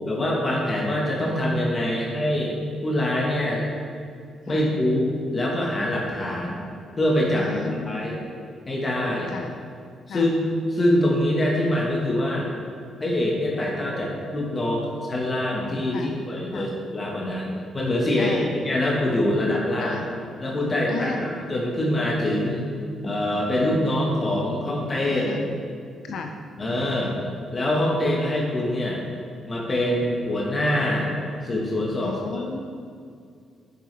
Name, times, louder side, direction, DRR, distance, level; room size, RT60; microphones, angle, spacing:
voice 1, 0.1-3.6 4.5-6.6 7.0-7.5 7.9-8.2 8.7-9.3 10.1-10.4 10.7-12.5 13.0-20.0 20.4-21.1 21.5-22.7 23.0-25.3 26.6-27.1 27.5-29.0 29.5-31.1 31.4-32.1, left 1 dB, 35° left, -3 dB, 1.4 m, -24 dB
voice 2, 1.9-2.4 4.5-4.7 7.4-8.2 9.3-9.5 10.1-10.3 15.9-16.2 16.5-16.7 18.2-18.5 19.8-20.1 20.9-21.3 25.0-25.6 26.0-26.4 32.0-32.6, left 5 dB, 70° left, 4 dB, 0.5 m, -34 dB
7.3 x 6.7 x 3.4 m, 2.3 s
cardioid pair, 70°, 0 cm